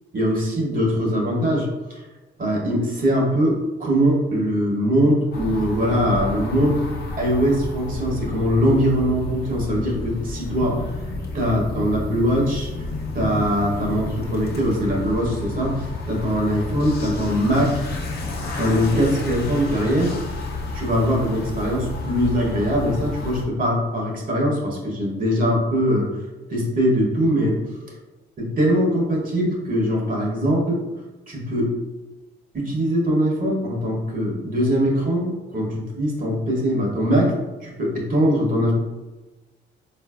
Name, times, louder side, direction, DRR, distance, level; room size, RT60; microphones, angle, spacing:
voice 1, 0.1-2.0 2.4-6.8 7.2-10.8 11.3-12.9 13.1-17.8 18.6-20.1 20.7-26.1 26.5-27.6 28.4-30.8 31.3-31.7 32.5-37.3 37.6-38.7, equal, 45° right, -1 dB, 0.9 m, -22 dB
sound 1, 5.3-23.5, left 2 dB, 55° left, 0.7 m, -30 dB
3.8 x 2.5 x 2.3 m, 1.1 s
cardioid pair, 90°, 20 cm